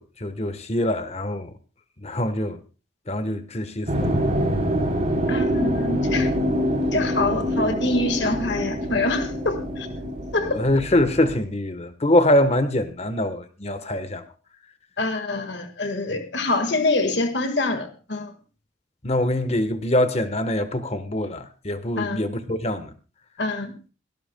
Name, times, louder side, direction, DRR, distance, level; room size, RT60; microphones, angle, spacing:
voice 1, 0.0-1.5 2.0-2.6 3.1-4.0 10.5-14.2 19.0-22.9, left 1 dB, 35° left, 1.1 m, -24 dB
sound 1, 3.9-11.4, equal, 40° right, 3.3 m, -25 dB
voice 2, 5.3-6.3 6.9-9.9 10.3-10.7 15.0-18.3 22.0-22.2 23.4-23.7, left 2 dB, 70° left, 1.7 m, -25 dB
23.0 x 12.5 x 2.2 m
head